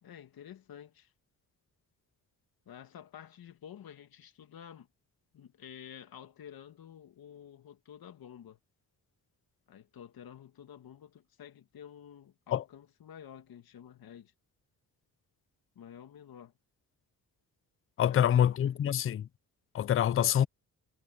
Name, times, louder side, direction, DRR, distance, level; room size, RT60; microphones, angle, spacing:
voice 1, 0.0-1.1 2.7-4.9 5.3-8.6 9.7-14.3 15.8-16.5 18.1-18.8, left 9 dB, 75° left, 2.3 m, -50 dB
voice 2, 18.0-19.3 19.7-20.5, left 10 dB, 35° left, 0.4 m, -26 dB
wide cardioid pair, 135°, 36 cm